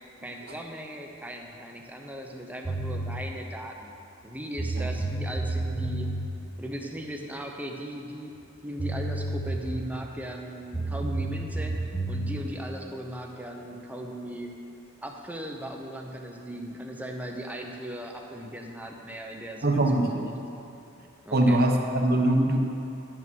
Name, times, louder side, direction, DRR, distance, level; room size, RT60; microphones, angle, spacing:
voice 1, 0.2-3.9 4.2-6.1 6.6-8.3 8.6-14.5 15.0-20.1 21.3-21.6, equal, 5° right, 2 dB, 0.7 m, -38 dB
sound 1, 2.6-3.2 4.2-4.3 4.6-6.3 8.4-8.5 8.8-10.0 10.7-12.4, right 2 dB, 20° left, 2.0 m, -30 dB
voice 2, 19.6-20.3 21.3-22.7, right 1 dB, 50° right, 3 dB, 1.0 m, -22 dB
11.0 x 6.1 x 6.1 m, 2.7 s
head